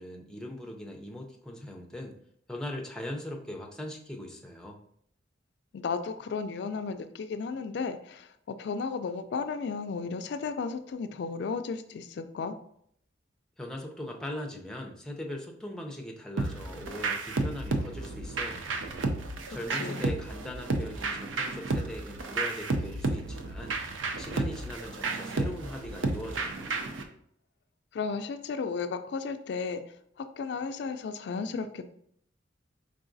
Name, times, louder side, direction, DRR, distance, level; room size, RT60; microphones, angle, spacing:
voice 1, 0.0-2.2 2.5-4.8 13.6-18.8 19.5-23.8 24.2-26.7, left 1 dB, 5° left, 1 dB, 0.5 m, -40 dB
voice 2, 5.7-12.6 19.7-20.0 27.9-29.8 30.2-31.8, left 5 dB, 60° left, 9 dB, 0.3 m, -34 dB
sound 1, 16.4-27.0, right 3 dB, 80° right, 0.5 m, -32 dB
4.7 x 3.7 x 2.6 m, 0.68 s
head